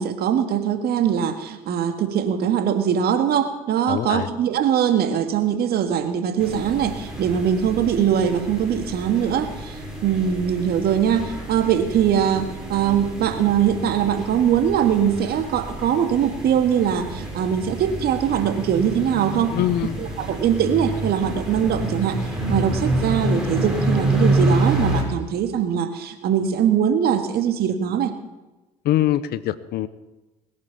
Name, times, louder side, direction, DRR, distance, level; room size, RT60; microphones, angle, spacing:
voice 1, 0.0-19.5 20.0-22.2 22.5-28.1, right 8 dB, 60° right, 8 dB, 2.0 m, -22 dB
voice 2, 3.9-4.3 19.5-20.0 28.8-29.9, left 13 dB, 60° left, 16 dB, 1.0 m, -23 dB
sound 1, 6.4-25.0, right 1 dB, 5° right, 6.6 m, -28 dB
20.5 x 9.7 x 7.2 m, 1.1 s
hypercardioid pair, 60°, 18 cm